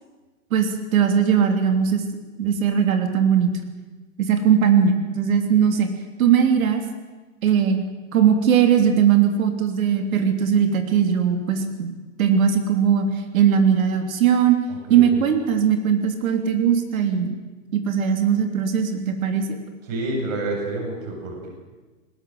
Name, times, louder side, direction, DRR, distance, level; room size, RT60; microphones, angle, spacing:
voice 1, 0.5-2.0 2.4-3.5 4.2-5.9 6.2-6.8 7.4-7.8 8.1-11.9 12.2-13.1 13.3-14.6 14.9-17.4 17.7-19.6, right 8 dB, 85° right, 6 dB, 3.3 m, -19 dB
voice 2, 14.7-15.2 19.9-21.5, right 2 dB, 70° right, 0 dB, 7.9 m, -29 dB
20.0 x 18.5 x 7.9 m, 1.3 s
supercardioid pair, 175°, 40 cm